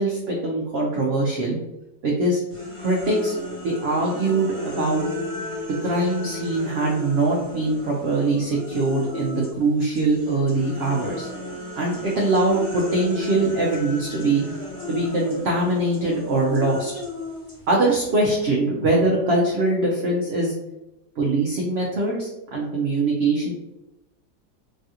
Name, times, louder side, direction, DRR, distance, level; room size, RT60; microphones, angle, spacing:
voice 1, 0.0-1.6 2.0-2.4 2.8-3.4 3.6-5.1 5.8-11.3 11.7-14.4 14.9-16.9 17.7-20.5 21.2-23.5, right 2 dB, 75° right, -2 dB, 0.6 m, -22 dB
sound 1, 2.5-9.6 9.9-18.5, left 2 dB, 25° left, 0.8 m, -35 dB
3.1 x 2.4 x 2.7 m, 0.94 s
omnidirectional pair, 1.7 m